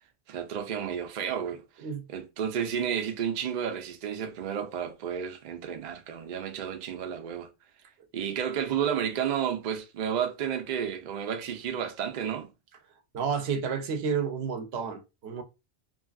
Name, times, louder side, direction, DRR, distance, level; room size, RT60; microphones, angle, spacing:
voice 1, 0.3-7.5 8.1-12.5, right 8 dB, 55° right, 0.6 m, -32 dB
voice 2, 13.1-15.4, right 6 dB, 85° right, 0.8 m, -31 dB
3.1 x 2.4 x 2.3 m
omnidirectional pair, 1.0 m